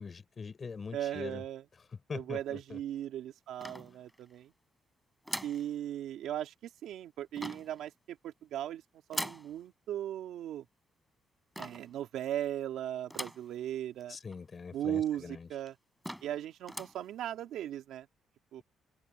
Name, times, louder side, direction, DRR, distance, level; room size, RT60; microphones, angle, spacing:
voice 1, 0.0-1.4 2.1-2.8 14.1-15.5, left 5 dB, 30° left, 6.6 m, -42 dB
voice 2, 0.9-1.6 2.1-4.5 5.4-8.8 9.1-10.6 11.6-14.2 14.7-15.8 16.2-18.1 18.5-18.6, right 11 dB, 75° right, 2.8 m, -37 dB
sound 1, 3.6-4.3 5.2-5.7 7.3-7.8 9.1-9.5 11.5-11.9 13.1-13.5 14.0-14.1 14.3-14.4 15.2-15.3 15.7-15.8 16.0-16.4 16.6-17.0, equal, ahead, 4.4 m, -40 dB
open air
cardioid pair, 160°, 0 cm